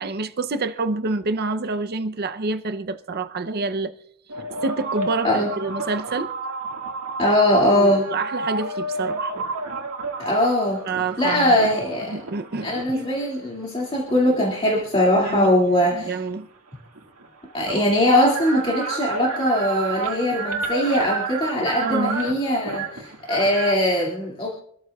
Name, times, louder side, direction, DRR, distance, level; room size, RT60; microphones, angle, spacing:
voice 1, 0.0-3.9 4.6-6.3 7.7-9.4 10.9-11.7 12.1-13.1 15.1-15.5 15.9-16.5 21.8-22.2, right 3 dB, 45° right, 0.7 m, -27 dB
sound 1, 4.3-13.1 13.8-15.5 16.7-16.8 17.0-23.7, right 3 dB, 75° right, 1.9 m, -31 dB
voice 2, 7.2-8.0 10.2-10.8 11.2-12.2 12.6-16.2 17.5-24.5, left 1 dB, 25° left, 2.3 m, -21 dB
26.5 x 13.5 x 2.4 m
head